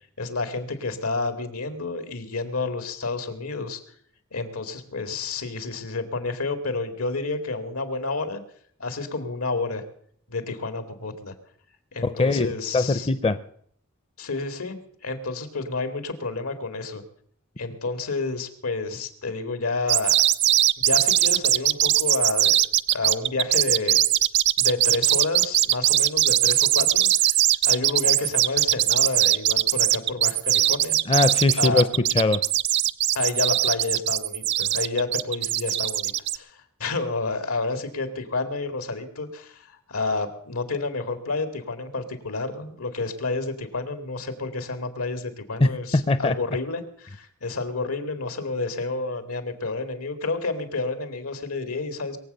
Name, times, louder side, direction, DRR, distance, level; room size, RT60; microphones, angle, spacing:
voice 1, 0.2-3.8 4.3-8.4 8.8-9.8 10.3-11.3 11.9-13.1 14.2-17.0 17.6-20.2 20.8-22.6 22.9-24.0 24.6-27.3 27.6-30.9 31.6-31.9 33.1-52.2, left 3 dB, 90° left, 2.2 m, -30 dB
voice 2, 12.0-13.4 31.1-32.4 45.6-46.4, left 2 dB, 25° left, 0.5 m, -22 dB
sound 1, 19.9-36.4, right 13 dB, 55° right, 0.5 m, -21 dB
22.5 x 7.8 x 6.7 m
head